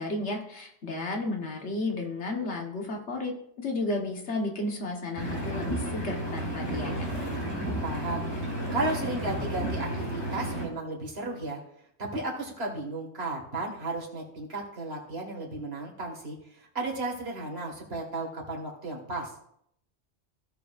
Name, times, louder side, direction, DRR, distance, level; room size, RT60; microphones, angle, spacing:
voice 1, 0.0-7.1, left 2 dB, 85° left, 2 dB, 1.7 m, -33 dB
Engine, 5.2-10.7, right 1 dB, 30° left, 2.8 m, -32 dB
voice 2, 7.4-11.6 12.0-19.3, right 2 dB, 65° right, -1 dB, 2.3 m, -34 dB
16.0 x 6.8 x 2.5 m, 0.72 s
omnidirectional pair, 1.1 m